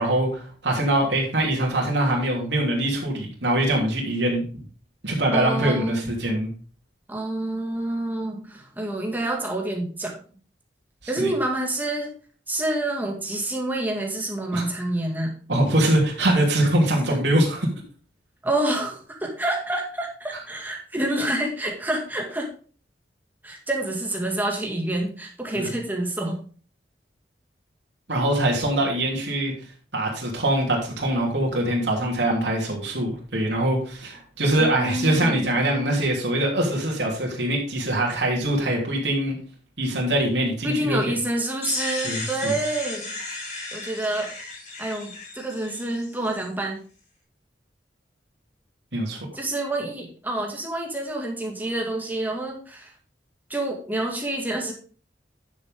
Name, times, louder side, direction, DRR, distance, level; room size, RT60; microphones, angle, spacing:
voice 1, 0.0-4.6 5.0-6.5 11.2-11.3 14.5-14.6 15.5-17.7 25.5-25.7 28.1-29.5 29.9-39.4 39.8-41.0 42.0-42.5 48.9-49.2, right 1 dB, 90° right, -2 dB, 3.2 m, -23 dB
voice 2, 5.3-6.2 7.1-10.2 11.1-12.1 12.5-15.3 18.4-22.5 23.4-26.4 34.6-35.4 40.6-43.2 43.7-44.3 44.8-46.8 49.3-52.9 53.5-54.7, right 1 dB, 10° right, 1 dB, 2.3 m, -28 dB
sound 1, 41.6-46.5, left 2 dB, 45° left, 4.7 m, -34 dB
10.5 x 7.2 x 3.8 m, 0.40 s
head